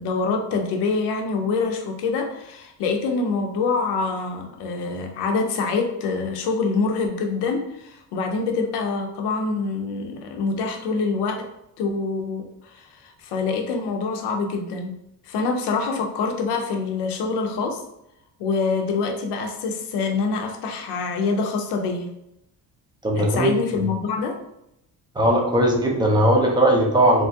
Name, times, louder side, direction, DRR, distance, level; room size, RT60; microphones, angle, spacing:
voice 1, 0.0-11.4 11.8-14.9 15.3-17.8 18.4-22.1 23.2-24.3, left 4 dB, 85° left, 3 dB, 0.6 m, -25 dB
voice 2, 23.0-23.5 25.2-27.3, right 1 dB, 10° right, 0 dB, 0.4 m, -18 dB
2.9 x 2.4 x 2.6 m, 0.81 s
cardioid pair, 135°, 40 cm